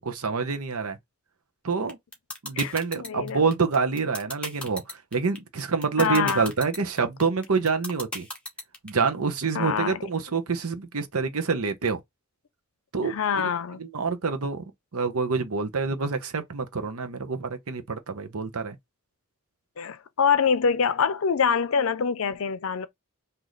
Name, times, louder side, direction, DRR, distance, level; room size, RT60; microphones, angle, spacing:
voice 1, 0.1-1.0 1.6-2.0 2.4-8.3 8.8-12.0 12.9-13.5 13.8-14.6 14.9-18.8, right 4 dB, 85° right, 0.9 m, -27 dB
sound 1, 1.9-8.9, left 2 dB, 5° left, 0.9 m, -35 dB
voice 2, 2.6-3.4 6.0-6.5 9.5-10.0 13.0-13.8 19.8-22.9, left 6 dB, 70° left, 0.5 m, -25 dB
3.1 x 2.8 x 3.9 m
head